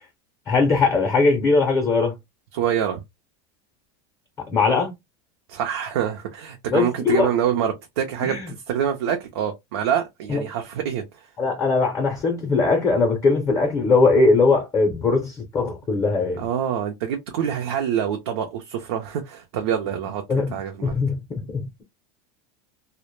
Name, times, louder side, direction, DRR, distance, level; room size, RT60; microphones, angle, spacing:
voice 1, 0.5-2.1 4.5-4.9 6.7-7.3 8.2-8.5 10.3-10.4 11.4-16.4 20.3-20.5 20.8-21.8, left 3 dB, 20° left, 0.5 m, -20 dB
voice 2, 2.5-3.0 5.5-11.3 16.4-20.2 20.5-20.9, right 9 dB, 85° right, 0.5 m, -26 dB
2.1 x 2.0 x 3.0 m
supercardioid pair, 150°, 13 cm